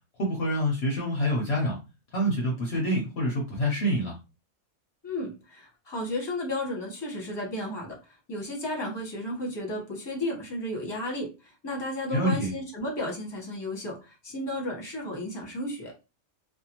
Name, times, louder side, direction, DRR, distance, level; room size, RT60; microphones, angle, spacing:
voice 1, 0.2-1.8 2.1-4.2 12.1-12.5, equal, 55° left, -1 dB, 0.9 m, -26 dB
voice 2, 5.0-7.9 8.3-15.9, left 1 dB, 20° left, -1 dB, 1.0 m, -33 dB
2.6 x 2.4 x 2.9 m, 0.29 s
omnidirectional pair, 1.4 m